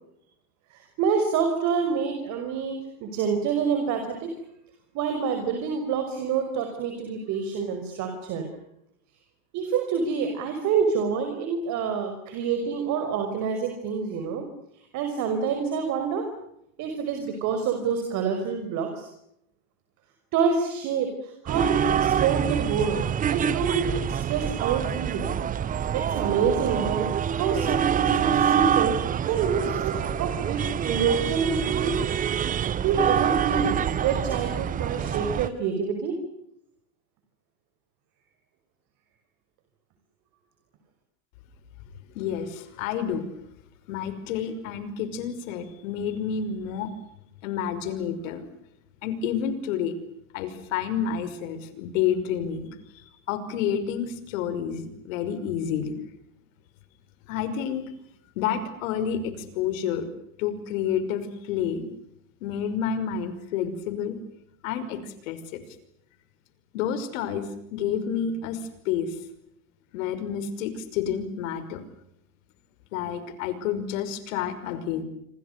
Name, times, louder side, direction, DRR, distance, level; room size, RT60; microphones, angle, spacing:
voice 1, 0.7-4.3 4.9-8.5 9.5-14.5 14.9-16.3 16.8-19.1 20.3-23.0 23.3-25.3 25.9-29.0 29.3-32.0 32.8-33.7 34.0-36.2, right 6 dB, 40° right, 5 dB, 5.5 m, -27 dB
sound 1, 21.5-35.5, right 9 dB, 20° right, 1.0 m, -26 dB
voice 2, 42.1-43.3 43.9-46.9 47.4-48.5 49.0-50.0 50.3-52.7 52.9-56.0 57.3-57.9 58.4-60.1 60.4-61.8 62.4-64.2 64.6-65.6 66.7-69.2 69.9-71.8 72.9-75.0, left 8 dB, 65° left, 12 dB, 5.7 m, -29 dB
28.0 x 26.5 x 6.8 m, 0.77 s
supercardioid pair, 145°, 42 cm